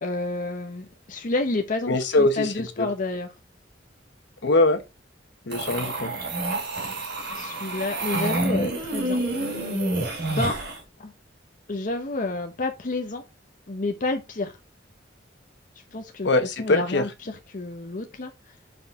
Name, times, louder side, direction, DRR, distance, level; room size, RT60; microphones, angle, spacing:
voice 1, 0.0-3.3 7.3-9.2 10.3-10.6 11.0-11.1 11.7-13.2 13.7-14.5 15.9-16.3 16.6-18.3, left 2 dB, 45° left, 0.8 m, -29 dB
voice 2, 1.9-2.9 4.4-4.8 5.5-6.1 16.2-17.0, left 2 dB, 65° left, 1.0 m, -22 dB
sound 1, 5.5-10.8, right 2 dB, 60° right, 3.3 m, -28 dB
5.3 x 4.5 x 4.1 m
head